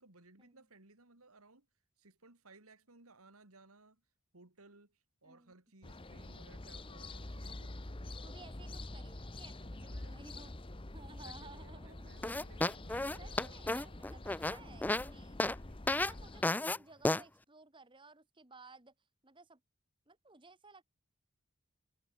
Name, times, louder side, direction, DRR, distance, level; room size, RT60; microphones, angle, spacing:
voice 1, 0.0-1.7 2.0-4.0 4.3-8.1 9.8-10.1 11.0-13.7 16.0-16.2, right 3 dB, 85° right, 3.1 m, -61 dB
sound 1, 5.8-16.5, left 2 dB, 25° left, 1.0 m, -47 dB
voice 2, 8.2-12.1 13.2-15.4 15.9-18.9 19.2-19.6 20.1-20.8, right 3 dB, 20° right, 1.7 m, -57 dB
sound 2, 12.2-15.1 15.4-15.6 15.9-16.1 16.4-16.8 17.0-17.2, left 2 dB, 10° left, 0.3 m, -32 dB
head